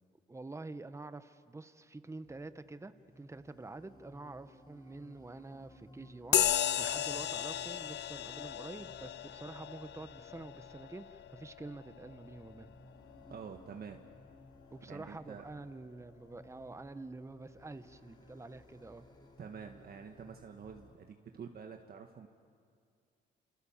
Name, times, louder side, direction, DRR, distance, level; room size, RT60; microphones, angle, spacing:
voice 1, 0.3-12.7 14.7-19.1, right 3 dB, 15° right, 12 dB, 1.1 m, -47 dB
sound 1, 2.2-20.9, left 1 dB, 20° left, 4.0 m, -59 dB
sound 2, 6.3-14.2, left 11 dB, 60° left, 0.6 m, -36 dB
voice 2, 13.3-14.0 14.9-15.5 19.4-22.3, right 6 dB, 50° right, 4 dB, 1.5 m, -48 dB
28.0 x 28.0 x 7.3 m, 2.2 s
cardioid pair, 90°, 20 cm